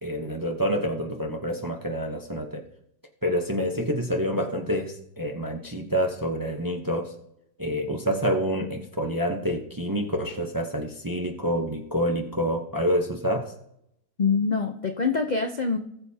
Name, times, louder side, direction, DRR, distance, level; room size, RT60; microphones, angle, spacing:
voice 1, 0.0-2.6 3.2-7.1 7.6-13.5, equal, 20° right, 2 dB, 0.6 m, -27 dB
voice 2, 14.2-15.8, left 5 dB, 55° left, 4 dB, 0.5 m, -24 dB
19.0 x 6.7 x 2.8 m, 0.77 s
omnidirectional pair, 1.7 m